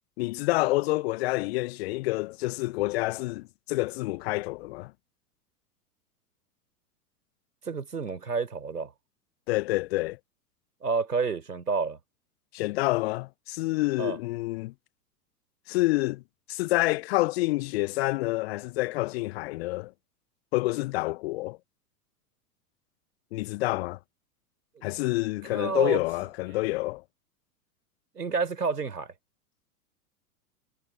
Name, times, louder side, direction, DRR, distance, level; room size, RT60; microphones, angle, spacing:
voice 1, 0.2-4.9 9.5-10.2 12.5-14.7 15.7-16.2 16.5-19.9 20.5-21.6 23.3-24.0 24.8-27.0, left 20 dB, 40° left, 0.9 m, -28 dB
voice 2, 7.6-8.9 10.8-12.0 14.0-14.2 24.8-24.9 25.4-26.0 28.1-29.1, right 5 dB, 80° right, 3.7 m, -29 dB
figure-of-eight pair, 95°, 46 cm